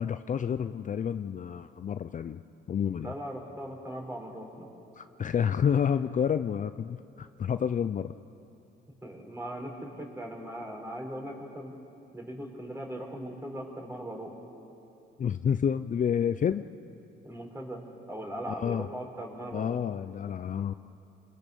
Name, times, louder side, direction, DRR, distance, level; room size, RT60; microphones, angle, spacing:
voice 1, 0.0-2.4 2.7-3.1 5.0-8.1 15.2-16.7 18.6-18.9 19.5-20.7, left 8 dB, 40° left, 11 dB, 0.5 m, -29 dB
voice 2, 3.0-4.7 9.0-11.7 12.1-14.3 17.2-19.8, right 1 dB, 15° right, -1 dB, 5.5 m, -39 dB
28.5 x 22.0 x 7.0 m, 2.8 s
cardioid pair, 90°, 20 cm